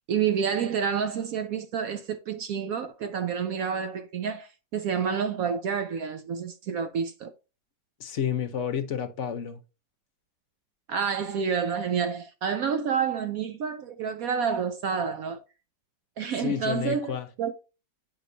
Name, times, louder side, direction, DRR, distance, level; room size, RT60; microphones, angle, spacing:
voice 1, 0.1-7.3 10.9-15.4 16.2-17.5, right 7 dB, 70° right, 0.8 m, -29 dB
voice 2, 8.0-9.6 16.4-17.3, left 8 dB, 55° left, 0.8 m, -30 dB
8.7 x 4.7 x 2.6 m
omnidirectional pair, 1.9 m